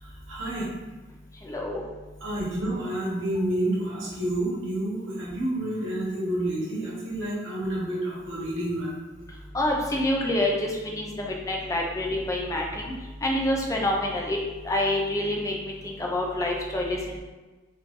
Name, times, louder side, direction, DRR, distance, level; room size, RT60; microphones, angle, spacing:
voice 1, 0.3-0.7 2.2-8.9, right 1 dB, 75° right, -5 dB, 1.1 m, -29 dB
voice 2, 1.4-1.8 9.5-12.9 13.2-14.4 14.6-17.2, left 1 dB, 15° left, -1 dB, 0.4 m, -27 dB
3.1 x 2.5 x 3.6 m, 1.2 s
head